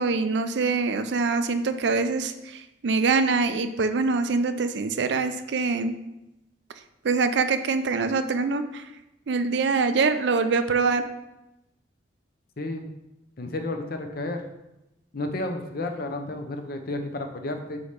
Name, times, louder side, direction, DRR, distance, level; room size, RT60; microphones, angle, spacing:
voice 1, 0.0-5.9 7.0-8.8 9.3-11.0, right 4 dB, 65° right, 10 dB, 0.4 m, -24 dB
voice 2, 12.6-12.9 13.4-14.4 15.1-17.8, left 2 dB, 50° left, 6 dB, 0.7 m, -32 dB
4.9 x 4.2 x 5.0 m, 0.92 s
head